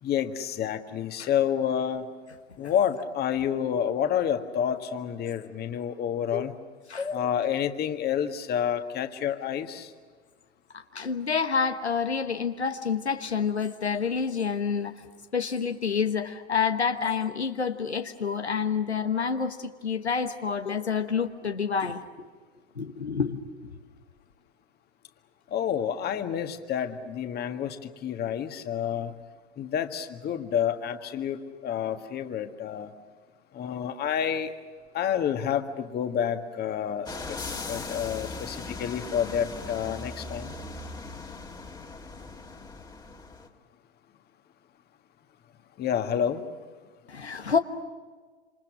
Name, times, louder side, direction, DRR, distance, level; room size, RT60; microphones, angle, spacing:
voice 1, 0.0-2.1 2.6-6.5 7.1-9.9 25.5-29.1 29.6-32.9 33.5-34.5 34.9-37.4 37.7-40.6 45.8-46.4, left 9 dB, 30° left, 7 dB, 1.8 m, -29 dB
voice 2, 6.9-7.3 10.7-15.0 15.3-22.3 22.7-23.5 47.1-47.6, left 6 dB, 90° left, 6 dB, 1.3 m, -28 dB
sound 1, 37.1-43.5, left 3 dB, 10° left, 2.1 m, -39 dB
27.5 x 27.0 x 6.3 m, 1.5 s
figure-of-eight pair, 95°, 32 cm